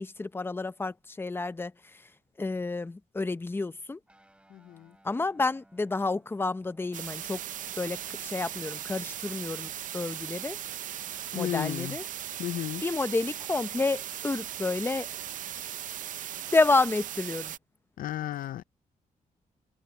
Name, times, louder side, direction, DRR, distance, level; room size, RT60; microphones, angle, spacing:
voice 1, 0.0-1.7 2.4-4.0 5.0-7.4 7.8-8.0 8.2-10.6 11.3-12.0 12.8-15.1 16.5-17.5, left 3 dB, 15° left, 0.7 m, -29 dB
Guitar, 4.1-14.0, right 1 dB, 10° right, 4.7 m, -63 dB
voice 2, 4.5-4.9 11.3-12.0 12.4-12.8 18.0-18.6, left 13 dB, 85° left, 0.5 m, -33 dB
sound 1, 6.9-17.6, right 11 dB, 70° right, 0.5 m, -38 dB
cardioid pair, 115°, 14 cm